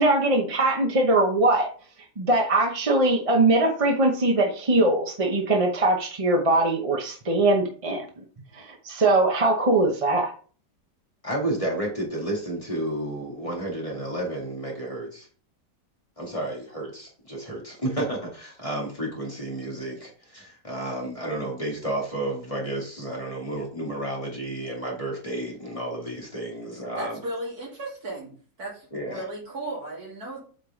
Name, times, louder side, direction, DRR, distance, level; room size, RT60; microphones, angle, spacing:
voice 1, 0.0-1.7 2.2-8.1 8.5-10.3, right 2 dB, 30° right, 3 dB, 0.7 m, -21 dB
voice 2, 11.2-15.3 16.2-27.2 28.9-29.2, right 1 dB, 20° left, -3 dB, 2.1 m, -31 dB
voice 3, 27.0-30.4, right 1 dB, 60° right, -3 dB, 3.1 m, -35 dB
8.1 x 4.8 x 3.6 m, 0.42 s
omnidirectional pair, 1.8 m